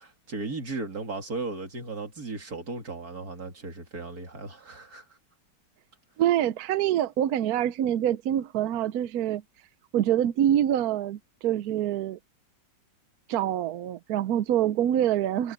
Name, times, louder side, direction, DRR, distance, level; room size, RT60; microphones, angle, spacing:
voice 1, 0.0-5.0, right 3 dB, 50° right, 3.4 m, -36 dB
voice 2, 6.2-9.4 9.9-12.2 13.3-15.5, right 11 dB, 65° right, 0.9 m, -25 dB
omnidirectional pair, 2.1 m